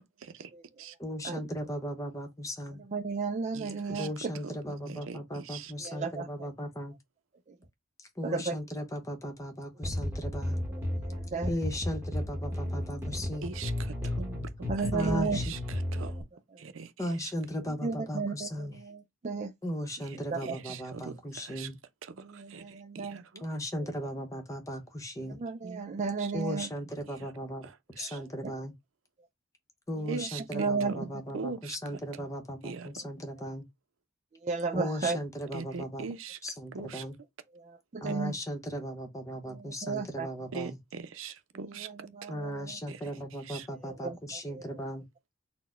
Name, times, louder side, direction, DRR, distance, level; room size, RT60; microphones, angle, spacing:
voice 1, 0.2-0.5 0.8-1.0 3.5-4.1 4.4-5.7 13.4-16.2 16.6-17.3 20.0-21.7 22.0-23.5 25.6-25.9 26.2-26.3 27.1-27.3 27.6-28.2 30.1-31.8 32.6-32.9 35.5-36.4 36.7-37.0 40.5-42.3 42.9-43.1 43.4-43.7, right 5 dB, 90° right, 0.6 m, -42 dB
voice 2, 1.0-2.8 3.9-7.0 8.0-10.6 11.5-13.5 14.9-15.5 17.0-18.8 19.6-21.8 23.4-25.4 26.3-28.7 29.9-33.7 34.7-36.1 36.4-37.2 38.0-40.8 42.3-45.1, equal, 15° left, 0.8 m, -37 dB
voice 3, 2.9-4.1 5.8-6.5 8.2-8.6 10.9-11.5 14.7-15.4 17.8-19.5 20.3-20.6 22.2-23.2 25.4-26.7 30.5-30.9 34.4-35.2 37.5-38.3 39.5-40.3 41.8-41.9 42.2-42.7 44.0-44.2 44.5-44.6, right 4 dB, 35° right, 0.4 m, -33 dB
sound 1, 9.8-16.2, left 1 dB, 10° right, 1.1 m, -34 dB
4.2 x 2.1 x 4.3 m
head